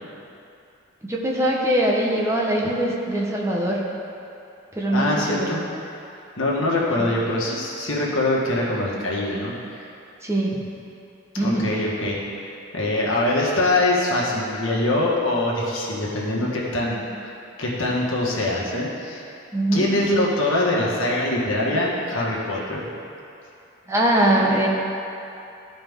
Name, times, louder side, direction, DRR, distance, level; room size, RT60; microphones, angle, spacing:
voice 1, 1.0-3.8 4.7-5.5 7.0-7.1 10.2-10.6 11.4-11.7 19.5-19.9 23.9-24.7, right 1 dB, 15° right, -3 dB, 1.0 m, -22 dB
voice 2, 4.9-5.6 6.4-9.5 11.4-12.2 12.7-17.1 17.6-19.2 19.7-22.9, left 1 dB, 65° left, -4 dB, 1.6 m, -23 dB
13.5 x 5.1 x 3.6 m, 2.7 s
head